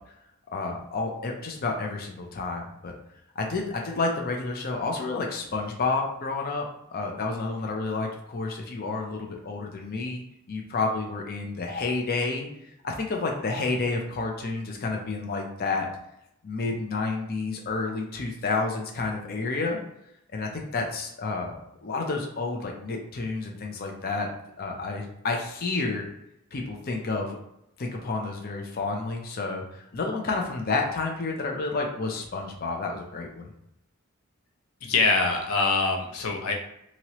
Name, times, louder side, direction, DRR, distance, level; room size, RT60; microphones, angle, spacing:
voice 1, 0.5-2.9 3.4-12.5 12.8-15.9 16.4-19.8 20.3-24.3 24.6-26.1 26.5-27.4 27.8-33.5, left 3 dB, 45° left, 1 dB, 0.5 m, -30 dB
voice 2, 34.8-36.5, left 3 dB, 90° left, 3 dB, 0.6 m, -24 dB
2.9 x 2.8 x 2.9 m, 0.81 s
head